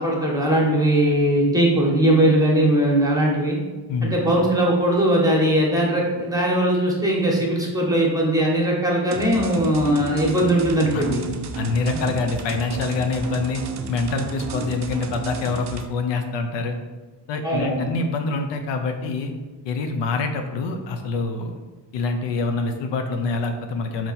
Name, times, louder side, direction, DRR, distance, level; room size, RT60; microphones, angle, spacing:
voice 1, 0.0-3.6 4.0-11.2 17.4-17.9, right 1 dB, 10° right, -2 dB, 1.1 m, -20 dB
sound 1, 9.1-15.9, right 5 dB, 40° right, 0.5 m, -33 dB
voice 2, 11.6-16.8 17.3-19.3 19.6-21.5 21.9-24.1, left 3 dB, 85° left, 5 dB, 0.6 m, -25 dB
3.8 x 3.0 x 4.1 m, 1.2 s
cardioid pair, 75°, 42 cm